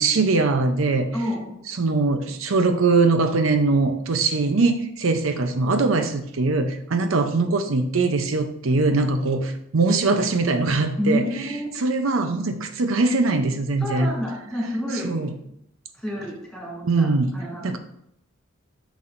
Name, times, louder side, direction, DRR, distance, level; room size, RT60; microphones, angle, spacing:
voice 1, 0.0-1.1 1.8-11.2 11.8-14.1 15.0-15.3 16.8-17.3 17.6-17.8, right 3 dB, 85° right, 7 dB, 0.7 m, -21 dB
voice 2, 1.1-1.6 11.0-11.7 13.8-15.3 15.9-17.8, equal, ahead, -3 dB, 2.6 m, -29 dB
9.3 x 6.2 x 2.6 m, 0.77 s
head